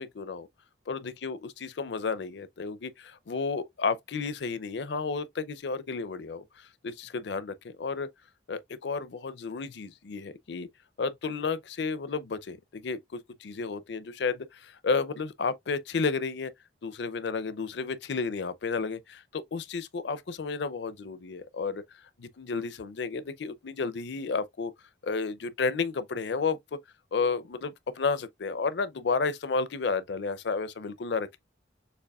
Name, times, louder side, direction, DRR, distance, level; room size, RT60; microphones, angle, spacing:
voice 1, 0.0-0.5 0.9-8.1 8.5-10.7 11.0-16.5 16.8-21.8 22.2-24.7 25.0-26.6 27.1-31.4, left 4 dB, 65° left, 0.5 m, -32 dB
6.7 x 2.9 x 2.3 m
head